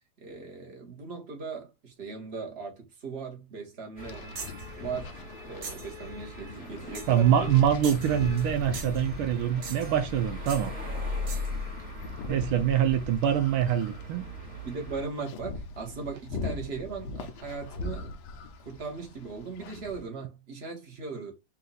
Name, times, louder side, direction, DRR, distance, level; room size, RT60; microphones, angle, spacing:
voice 1, 0.2-4.4 4.8-7.5 12.3-12.6 14.6-18.1 18.6-21.3, right 4 dB, 35° right, 1.6 m, -38 dB
sound 1, 4.0-20.0, left 3 dB, 75° left, 1.5 m, -41 dB
sound 2, 4.0-15.1, left 2 dB, 15° right, 1.8 m, -39 dB
sound 3, 4.3-4.7 5.6-5.9 6.9-7.2 7.8-8.5 8.7-9.1 9.6-10.0 10.5-10.7 11.3-11.5, right 5 dB, 50° right, 1.0 m, -41 dB
voice 2, 7.1-10.7 12.3-14.3, right 9 dB, 80° right, 1.4 m, -24 dB
4.4 x 2.7 x 3.9 m
omnidirectional pair, 2.3 m